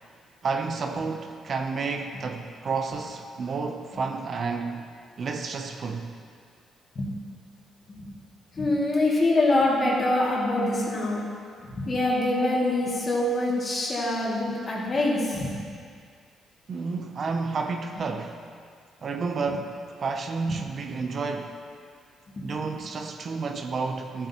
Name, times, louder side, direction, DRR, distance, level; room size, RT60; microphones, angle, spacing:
voice 1, 0.4-4.9 5.2-6.1 16.7-18.4 19.0-21.6 22.4-24.3, right 4 dB, 50° right, 5 dB, 0.6 m, -31 dB
voice 2, 8.5-11.2 11.7-15.5 20.5-20.6 22.3-22.6, left 2 dB, 35° left, -4 dB, 2.2 m, -25 dB
12.5 x 8.0 x 3.0 m, 2.2 s
cardioid pair, 90°, 0 cm